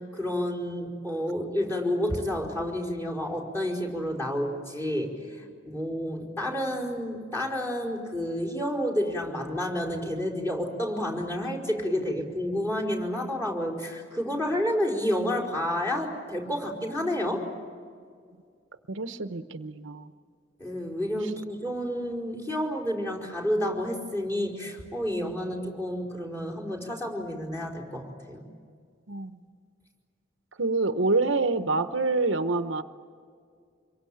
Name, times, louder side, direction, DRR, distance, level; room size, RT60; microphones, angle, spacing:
voice 1, 0.0-17.4 20.6-28.4, equal, 15° left, -3 dB, 4.9 m, -30 dB
voice 2, 18.9-20.1 29.1-29.4 30.6-32.8, right 3 dB, 75° right, 10 dB, 1.0 m, -26 dB
26.5 x 23.0 x 8.7 m, 2.1 s
head